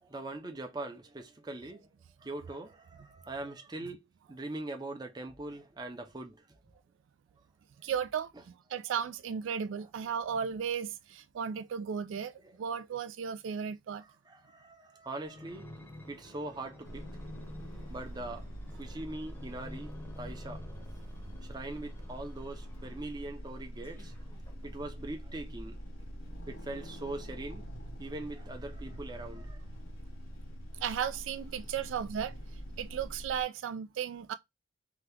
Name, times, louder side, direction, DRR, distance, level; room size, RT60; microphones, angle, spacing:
voice 1, 0.0-1.9 2.2-6.4 12.4-12.5 14.3-15.7 16.1-17.1 17.9-18.5 18.8-20.6 21.5-24.1 24.6-25.9 26.5-27.6 28.0-29.6, right 2 dB, 20° right, 0.6 m, -42 dB
voice 2, 7.8-8.3 8.7-12.3 12.6-14.0 30.8-32.4 32.8-34.3, right 7 dB, 75° right, 0.3 m, -35 dB
sound 1, 15.3-23.2 23.8-25.1 25.7-25.8, left 1 dB, 10° left, 0.7 m, -51 dB
sound 2, 16.8-33.4, equal, 80° left, 1.1 m, -44 dB
2.8 x 2.3 x 3.4 m
head